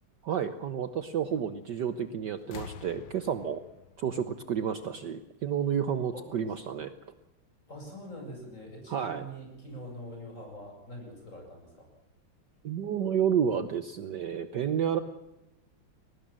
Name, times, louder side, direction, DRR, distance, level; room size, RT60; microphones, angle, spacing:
voice 1, 0.2-3.6 4.0-6.9 8.9-9.2 12.6-15.0, right 8 dB, 60° right, 11 dB, 1.4 m, -30 dB
sound 1, 1.8-2.1 2.4-5.2 6.3-6.4, left 8 dB, 65° left, 1.6 m, -48 dB
voice 2, 7.7-11.9, equal, 35° left, 1 dB, 8.4 m, -44 dB
21.5 x 19.5 x 7.6 m, 0.95 s
omnidirectional pair, 2.4 m